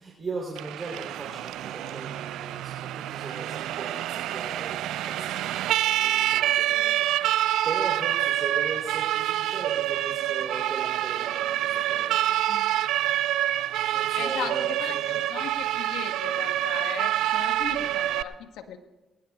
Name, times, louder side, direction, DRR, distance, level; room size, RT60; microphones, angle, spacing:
voice 1, 0.0-12.8 13.8-15.2, right 3 dB, 40° right, -2 dB, 3.5 m, -39 dB
Siren, 0.5-18.2, right 13 dB, 80° right, 0.3 m, -27 dB
voice 2, 14.1-18.8, left 8 dB, 80° left, 7 dB, 1.2 m, -37 dB
21.0 x 19.5 x 2.4 m, 1.1 s
supercardioid pair, 60°, 0 cm